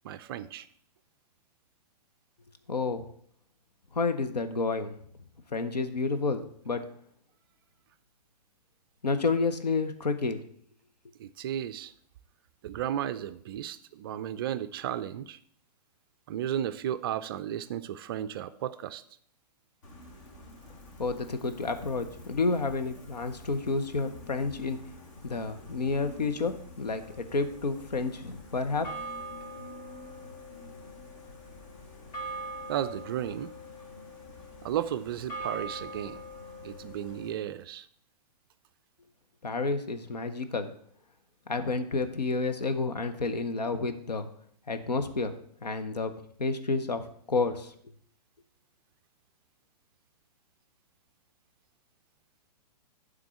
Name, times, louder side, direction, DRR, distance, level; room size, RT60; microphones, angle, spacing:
voice 1, 0.0-0.7 11.2-11.9 12.6-15.4 16.3-19.0 32.7-33.5 34.6-36.2 36.6-37.9, right 10 dB, 35° right, 12 dB, 0.4 m, -34 dB
voice 2, 2.7-3.1 3.9-4.9 5.5-6.8 9.0-10.4 21.0-24.8 25.2-28.9 39.4-40.7 41.5-44.3 44.7-45.3 45.6-46.1 46.4-47.7, left 3 dB, 75° left, 8 dB, 1.0 m, -30 dB
Gull seagull, 19.8-37.3, left 1 dB, 50° left, 2.0 m, -49 dB
sound 1, 27.0-28.4 28.8-37.4, right 2 dB, 20° left, 1.0 m, -43 dB
9.5 x 3.8 x 7.0 m, 0.63 s
figure-of-eight pair, 115°, 21 cm